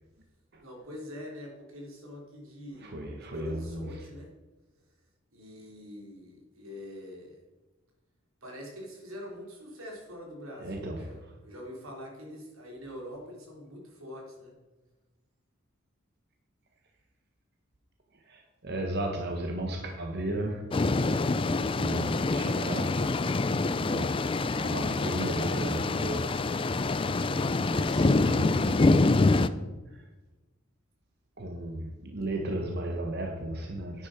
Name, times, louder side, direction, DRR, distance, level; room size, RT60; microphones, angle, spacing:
voice 1, 0.6-4.3 5.3-7.4 8.4-14.5, left 1 dB, 85° right, -1 dB, 3.5 m, -44 dB
voice 2, 2.8-3.9 10.6-11.1 18.2-20.7 21.7-23.3 23.7-24.1 24.5-26.4 27.3-27.5 27.7-28.9 29.9-30.0 31.4-34.1, right 1 dB, 50° right, 2 dB, 1.3 m, -35 dB
sound 1, 20.7-29.5, left 3 dB, 25° left, 0.4 m, -26 dB
10.5 x 10.0 x 5.1 m, 1.2 s
head